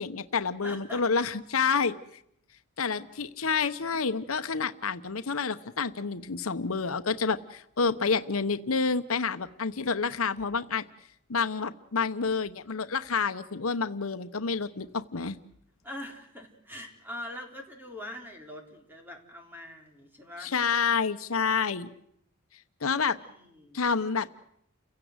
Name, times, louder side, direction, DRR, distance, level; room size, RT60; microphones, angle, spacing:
voice 1, 0.0-1.9 2.8-10.9 11.3-15.4 20.4-21.9 22.8-23.2 23.7-24.3, left 5 dB, 80° left, 10 dB, 1.0 m, -28 dB
voice 2, 0.6-1.0 3.9-4.0 15.8-20.5 23.1-23.8, left 1 dB, 10° right, 2 dB, 3.8 m, -43 dB
29.5 x 16.5 x 8.0 m, 0.73 s
head